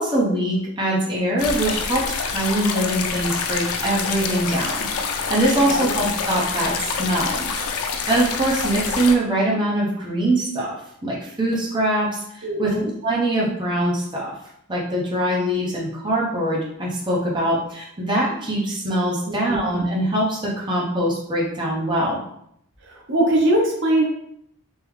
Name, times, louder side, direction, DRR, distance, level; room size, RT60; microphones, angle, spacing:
voice 1, 0.0-4.9 5.3-10.8 11.0-12.7 13.0-14.3 14.7-22.2, right 1 dB, 20° right, -4 dB, 0.7 m, -23 dB
sound 1, 1.4-9.2, left 5 dB, 80° left, 0.4 m, -26 dB
voice 2, 5.5-5.9 12.4-12.9 19.3-19.6 22.8-24.1, right 1 dB, 55° right, 0 dB, 0.7 m, -22 dB
3.6 x 2.9 x 3.1 m, 0.72 s
head